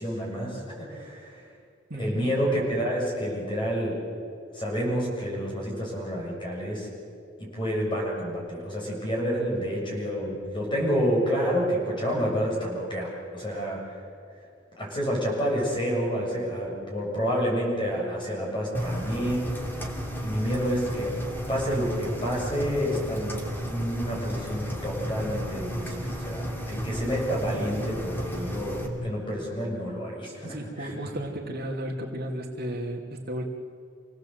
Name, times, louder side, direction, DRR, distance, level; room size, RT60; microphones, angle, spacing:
voice 1, 0.0-1.4 2.0-4.1 4.5-6.9 7.4-14.0 14.8-19.6 20.2-21.2 21.5-31.0, equal, 25° left, -3 dB, 7.2 m, -29 dB
voice 2, 1.9-2.3 30.5-33.5, right 1 dB, 55° right, -1 dB, 2.7 m, -33 dB
Engine, 18.7-28.9, equal, 10° left, 2.7 m, -33 dB
28.0 x 18.0 x 8.0 m, 2.4 s
head